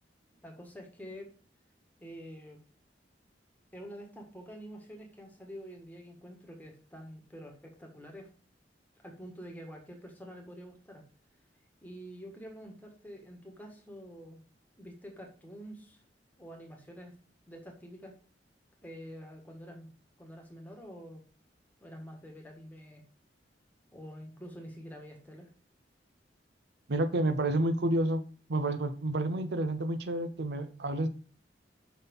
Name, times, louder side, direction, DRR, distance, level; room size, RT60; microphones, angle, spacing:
voice 1, 0.4-1.3 2.0-2.6 3.7-8.3 9.0-11.0 11.8-14.4 14.8-16.0 16.4-17.1 17.5-18.1 18.8-19.9 20.2-21.2 21.8-23.0 23.9-25.5, equal, 10° left, 1.5 m, -47 dB
voice 2, 26.9-28.2 28.5-31.1, right 1 dB, 70° right, 0.7 m, -29 dB
5.7 x 4.2 x 5.3 m
head